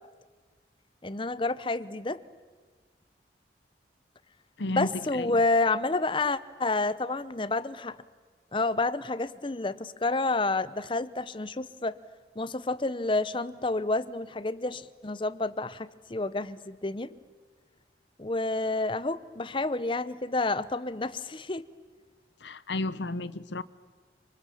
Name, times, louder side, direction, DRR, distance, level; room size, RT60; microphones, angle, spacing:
voice 1, 1.0-2.2 4.7-8.0 8.5-12.0 12.4-17.1 18.2-21.7, left 2 dB, 30° left, 0.7 m, -29 dB
voice 2, 4.6-4.9 5.1-5.4 22.4-23.6, left 2 dB, 85° left, 0.9 m, -32 dB
29.5 x 27.0 x 7.1 m
head